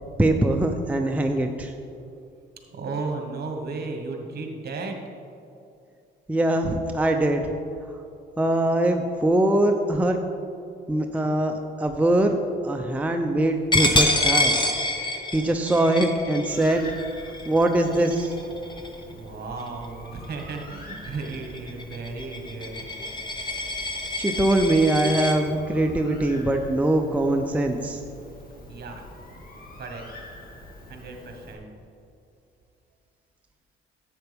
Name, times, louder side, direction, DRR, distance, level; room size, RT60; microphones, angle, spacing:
voice 1, 0.2-1.7 6.3-7.4 8.4-10.2 10.9-12.3 12.6-14.6 15.3-17.0 17.5-18.3 24.2-28.0, right 1 dB, 5° right, 4 dB, 0.5 m, -22 dB
voice 2, 2.7-5.0 19.1-22.8 28.7-29.0 29.8-30.1 30.9-31.7, right 3 dB, 55° right, 3 dB, 1.5 m, -34 dB
Coin (dropping), 13.7-19.1 19.6-19.9 20.2-25.4, left 1 dB, 25° left, 1.0 m, -27 dB
Bird, 16.5-31.5, left 1 dB, 45° left, 1.9 m, -45 dB
10.5 x 7.9 x 3.5 m, 2.6 s
cardioid pair, 90°, 20 cm